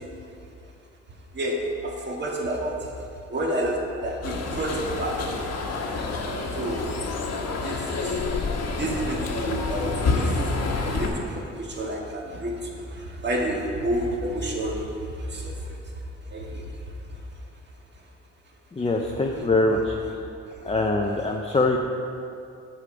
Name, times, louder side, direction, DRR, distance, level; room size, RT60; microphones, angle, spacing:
voice 1, 1.3-2.9 3.3-5.3 6.6-6.9 7.6-8.1 8.8-10.3 10.8-15.6 16.3-16.7 19.4-19.5, right 1 dB, 35° right, -1 dB, 1.7 m, -29 dB
sound 1, 4.2-11.1, left 3 dB, 55° left, 1.3 m, -28 dB
voice 2, 18.7-20.2 20.6-21.8, left 2 dB, 20° left, 0 dB, 0.6 m, -23 dB
8.5 x 6.6 x 5.1 m, 2.5 s
cardioid pair, 90°, 30 cm